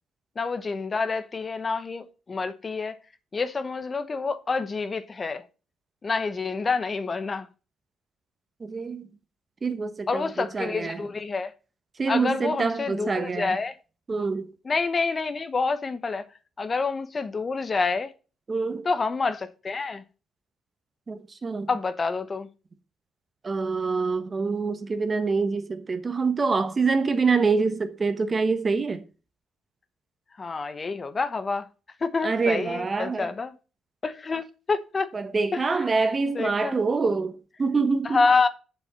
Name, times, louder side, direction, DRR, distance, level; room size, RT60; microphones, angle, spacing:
voice 1, 0.4-3.0 3.3-5.4 6.0-7.5 10.1-11.5 12.1-13.7 14.6-16.3 16.6-18.1 18.8-20.0 21.7-22.5 30.4-31.7 32.0-33.5 34.0-35.1 35.5-35.6 36.2-36.8 38.0-38.5, left 4 dB, 35° left, 1.1 m, -27 dB
voice 2, 8.6-9.1 9.6-11.0 12.0-13.6 14.1-14.5 18.5-18.8 21.1-21.7 23.4-29.0 32.2-33.3 35.1-38.2, right 4 dB, 35° right, 1.3 m, -26 dB
7.5 x 7.0 x 5.3 m
cardioid pair, 90°, 0 cm